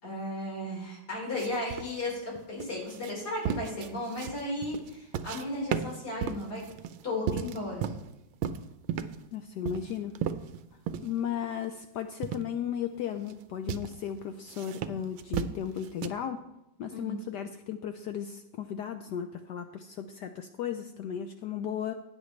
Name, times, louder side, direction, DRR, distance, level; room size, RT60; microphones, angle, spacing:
voice 1, 0.0-6.6 7.0-7.9 16.9-17.2, left 1 dB, 50° left, -3 dB, 4.9 m, -35 dB
sound 1, 1.4-5.4 5.7-8.1 8.4-9.2 9.7-11.1 11.5-11.6 12.2-12.5 13.0-13.3 13.7-13.9 14.5-16.1, right 9 dB, 75° right, 1.4 m, -34 dB
voice 2, 9.3-10.2 11.0-16.4 16.8-21.9, left 9 dB, 75° left, 8 dB, 0.9 m, -35 dB
16.0 x 8.7 x 3.2 m, 0.92 s
omnidirectional pair, 2.3 m